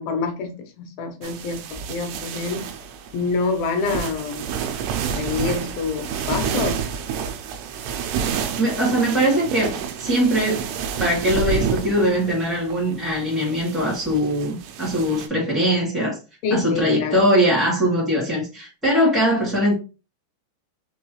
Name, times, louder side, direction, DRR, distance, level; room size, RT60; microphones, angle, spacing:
voice 1, 0.0-1.6 1.9-2.6 3.1-4.5 5.2-6.8 16.4-17.2, left 4 dB, 75° left, 2.4 m, -26 dB
sound 1, 1.2-15.3, right 7 dB, 90° right, 2.7 m, -29 dB
voice 2, 8.6-10.7 11.0-16.2 16.5-19.7, equal, ahead, 0.4 m, -21 dB
6.2 x 2.3 x 3.1 m
omnidirectional pair, 4.6 m